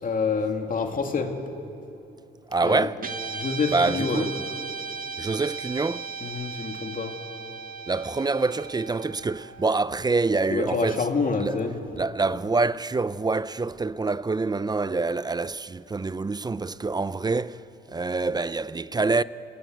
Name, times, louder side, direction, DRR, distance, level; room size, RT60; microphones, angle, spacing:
voice 1, 0.0-1.3 2.6-2.9 3.3-4.3 6.2-7.2 10.5-11.7, left 4 dB, 45° left, 2.6 m, -27 dB
voice 2, 2.5-3.0 3.7-4.3 5.2-6.1 7.9-11.0 11.4-11.6 12.0-17.6 17.9-19.2, right 3 dB, 20° right, 0.6 m, -26 dB
Guitar, 3.0-11.5, right 5 dB, 45° right, 1.7 m, -37 dB
29.0 x 19.5 x 7.9 m
cardioid pair, 90°, 20 cm